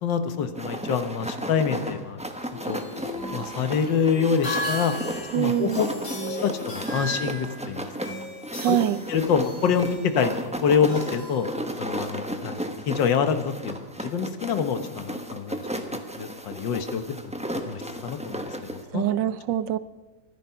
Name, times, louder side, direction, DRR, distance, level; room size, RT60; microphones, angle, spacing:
voice 1, 0.0-2.2 2.7-2.8 3.3-4.9 5.4-5.9 6.3-7.9 8.7-8.8 9.1-10.3 10.6-11.5 11.8-12.6 12.9-15.6 16.2-19.0, left 6 dB, 80° left, 8 dB, 1.8 m, -26 dB
sound 1, 0.5-18.8, right 1 dB, 5° right, 0.8 m, -34 dB
sound 2, 2.5-12.0, left 1 dB, 60° left, 4.4 m, -36 dB
voice 2, 5.3-5.8 8.6-9.0 18.9-19.8, right 12 dB, 80° right, 15 dB, 1.4 m, -24 dB
24.5 x 10.0 x 5.7 m, 1.2 s
omnidirectional pair, 2.0 m